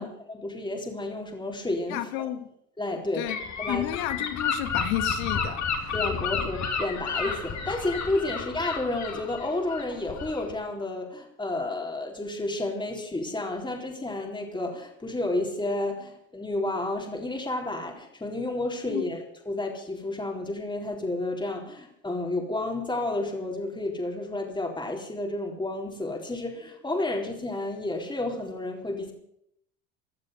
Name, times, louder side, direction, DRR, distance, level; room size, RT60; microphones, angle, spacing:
voice 1, 0.0-2.3 2.8-3.3 3.6-3.9 5.9-29.1, left 2 dB, 10° left, 1 dB, 3.9 m, -31 dB
voice 2, 1.9-2.5 3.1-3.4 3.7-5.9 18.9-19.1, left 12 dB, 85° left, 10 dB, 1.9 m, -31 dB
Gull seagull / Wind, 3.3-10.6, left 5 dB, 40° left, 3.7 m, -31 dB
17.0 x 11.5 x 6.6 m, 0.72 s
supercardioid pair, 90°, 41 cm